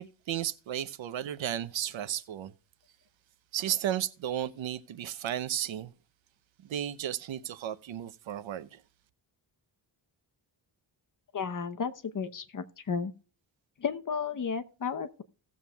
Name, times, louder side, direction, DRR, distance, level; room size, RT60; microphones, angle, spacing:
voice 1, 0.0-2.5 3.5-5.9 6.6-8.8, right 11 dB, 85° right, 0.8 m, -34 dB
voice 2, 11.3-13.1 13.8-15.2, left 6 dB, 45° left, 0.9 m, -33 dB
17.5 x 7.3 x 2.3 m
wide cardioid pair, 150°, 45 cm